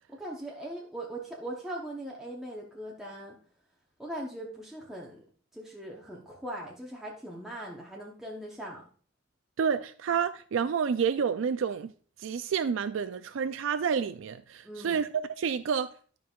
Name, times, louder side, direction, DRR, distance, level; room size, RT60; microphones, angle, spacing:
voice 1, 0.1-3.4 4.0-5.2 5.5-8.8 14.6-15.0, right 1 dB, ahead, 0.8 m, -40 dB
voice 2, 9.6-11.9 12.2-15.1 15.4-15.9, right 6 dB, 65° right, 0.4 m, -29 dB
12.0 x 5.3 x 2.4 m
head